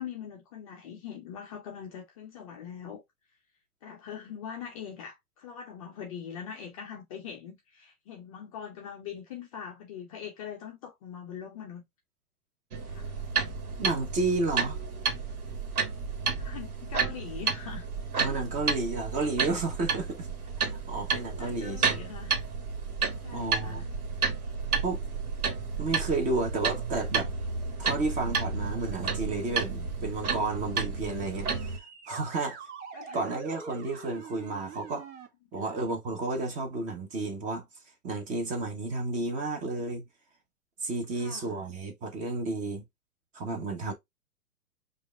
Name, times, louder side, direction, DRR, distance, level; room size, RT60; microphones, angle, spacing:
voice 1, 0.0-3.0 3.8-11.8 12.9-13.1 16.2-17.9 21.3-22.5 23.2-23.9 32.9-33.2 35.6-35.8 41.2-41.7, left 8 dB, 25° left, 0.5 m, -42 dB
sound 1, 12.7-31.8, right 5 dB, 70° right, 1.5 m, -31 dB
voice 2, 13.8-14.8 18.2-20.3 20.6-22.1 23.3-23.9 24.8-25.0 25.8-27.3 27.8-32.6 33.1-35.1 35.5-37.7 38.0-40.0 40.8-42.8 43.3-43.9, right 3 dB, 15° right, 0.8 m, -32 dB
sound 2, 31.5-35.3, right 6 dB, 50° right, 1.3 m, -45 dB
5.0 x 2.5 x 3.3 m
hypercardioid pair, 120°, 45 cm